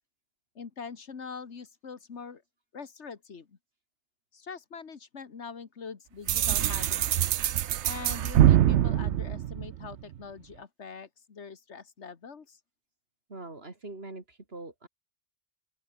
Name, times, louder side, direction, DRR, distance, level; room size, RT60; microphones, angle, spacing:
voice 1, 0.6-2.4 2.7-3.6 4.3-7.2 7.9-12.6, left 5 dB, 85° left, 1.9 m, -43 dB
sound 1, 6.3-10.1, right 11 dB, 85° right, 1.0 m, -24 dB
voice 2, 13.3-14.9, right 2 dB, 60° right, 3.6 m, -43 dB
open air
omnidirectional pair, 1.1 m